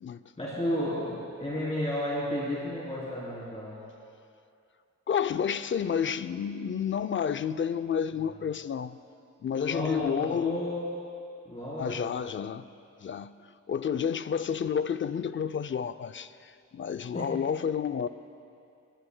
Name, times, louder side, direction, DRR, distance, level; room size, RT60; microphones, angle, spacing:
voice 1, 0.4-3.8 8.3-8.4 9.6-10.8 11.4-12.1 17.1-17.3, left 1 dB, 20° left, 3.2 m, -32 dB
voice 2, 5.1-9.0 9.4-10.6 11.8-12.7 13.0-13.3 13.7-18.1, left 7 dB, 45° left, 0.4 m, -30 dB
20.5 x 20.0 x 2.2 m
wide cardioid pair, 125°, 29 cm